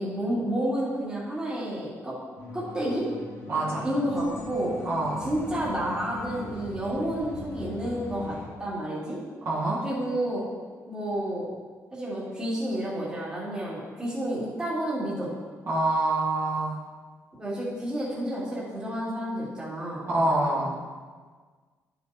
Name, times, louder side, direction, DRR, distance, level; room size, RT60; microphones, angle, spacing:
voice 1, 0.0-2.2 2.5-3.1 3.8-4.7 5.2-9.2 9.8-10.4 10.9-11.5 11.9-15.3 17.4-20.1, right 1 dB, 15° right, -7 dB, 2.8 m, -30 dB
sound 1, 2.4-8.5, left 3 dB, 85° left, 2.0 m, -40 dB
voice 2, 3.5-3.9 4.9-5.3 9.5-9.8 15.7-16.8 20.1-20.7, right 2 dB, 50° right, -7 dB, 2.1 m, -26 dB
10.5 x 7.8 x 3.0 m, 1.5 s
cardioid pair, 130°, 6 cm